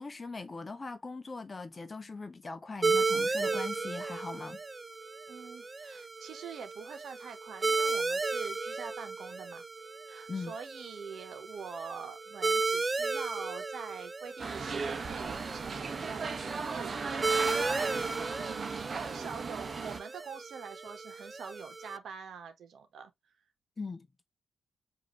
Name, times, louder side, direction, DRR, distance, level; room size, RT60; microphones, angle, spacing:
voice 1, 0.0-4.6 10.3-10.5 23.8-24.1, left 4 dB, 30° left, 0.7 m, -40 dB
sound 1, 2.8-22.0, right 4 dB, 30° right, 0.3 m, -34 dB
voice 2, 5.3-9.6 10.1-23.1, right 6 dB, 75° right, 1.1 m, -45 dB
sound 2, 14.4-20.0, right 4 dB, 45° right, 0.9 m, -36 dB
5.0 x 2.7 x 3.0 m
cardioid pair, 75°, 0 cm